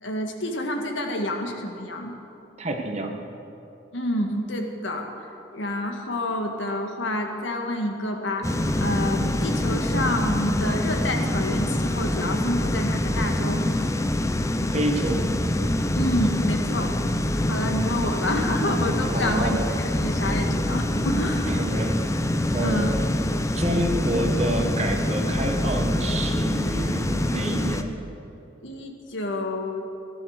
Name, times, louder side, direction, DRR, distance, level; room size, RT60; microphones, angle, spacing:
voice 1, 0.0-2.1 3.9-5.1 5.5-13.6 16.0-17.0 17.4-21.8 22.6-22.9 28.6-29.8, left 1 dB, 80° left, 3 dB, 1.8 m, -28 dB
voice 2, 2.6-3.2 14.7-15.2 19.1-19.7 21.4-22.2 22.5-23.0 23.5-27.9, right 1 dB, 35° right, 3 dB, 1.5 m, -28 dB
sound 1, 8.4-27.8, left 1 dB, 15° left, 0.6 m, -25 dB
16.5 x 11.5 x 6.5 m, 2.9 s
head